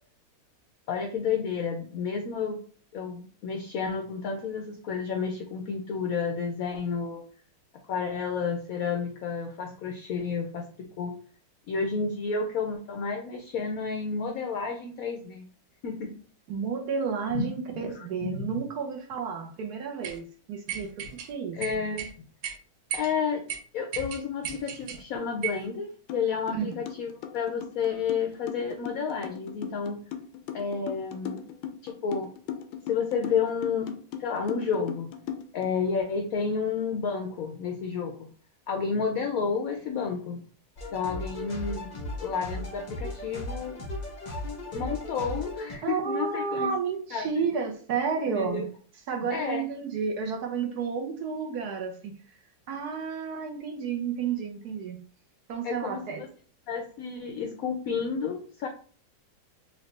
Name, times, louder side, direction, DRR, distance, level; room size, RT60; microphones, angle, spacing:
voice 1, 0.9-2.6 2.9-7.2 7.9-11.2 11.7-15.4 15.8-16.1 17.3-17.5 17.7-18.4 21.5-22.0 22.9-23.4 23.7-30.0 30.5-31.4 31.8-32.3 32.9-33.9 34.2-35.1 35.5-38.3 38.7-40.4 40.9-41.9 42.2-43.8 44.7-46.7 47.1-47.3 48.3-48.6 49.3-49.6 55.6-56.3 56.7-58.7, left 5 dB, 70° left, 3 dB, 0.8 m, -31 dB
voice 2, 16.5-21.9 26.5-26.8 45.8-48.6 49.1-52.1 52.7-55.0 55.5-56.2, right 6 dB, 65° right, 3 dB, 1.2 m, -31 dB
sound 1, 20.0-20.2 20.7-21.3 21.6-22.1 22.4-22.6 22.9-23.1 23.5-23.6 23.9-25.0 25.4-25.7, right 8 dB, 80° right, 1.4 m, -34 dB
sound 2, 26.1-26.2 26.5-35.7, left 9 dB, 90° left, 1.3 m, -37 dB
sound 3, 40.8-45.8, left 1 dB, 55° left, 0.4 m, -36 dB
4.2 x 2.6 x 3.2 m, 0.43 s
omnidirectional pair, 2.1 m